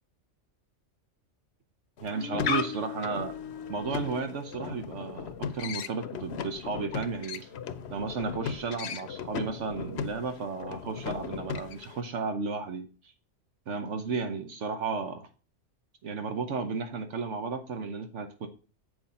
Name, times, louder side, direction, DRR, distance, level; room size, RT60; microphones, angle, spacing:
sound 1, 2.0-12.0, left 6 dB, 65° left, 0.9 m, -36 dB
voice 1, 2.0-3.3 3.7-7.5 7.9-12.9 13.7-15.3 16.0-18.5, right 4 dB, 75° right, 7 dB, 1.2 m, -33 dB
8.1 x 6.3 x 4.2 m, 0.36 s
omnidirectional pair, 1.2 m